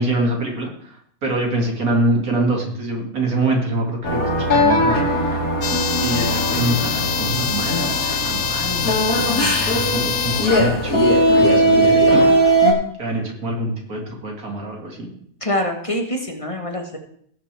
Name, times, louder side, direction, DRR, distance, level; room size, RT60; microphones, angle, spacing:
voice 1, 0.0-5.4 6.0-8.9 9.6-11.0 11.4-12.3 12.6-12.7 13.0-15.1, right 1 dB, 90° right, 1 dB, 2.7 m, -24 dB
sound 1, 4.0-12.7, equal, 90° left, 2.5 m, -19 dB
sound 2, 5.6-10.7, left 7 dB, 55° left, 0.9 m, -25 dB
voice 2, 9.3-9.6 15.4-17.0, left 1 dB, 25° left, 3 dB, 1.3 m, -25 dB
18.0 x 7.5 x 3.4 m, 0.65 s
omnidirectional pair, 1.5 m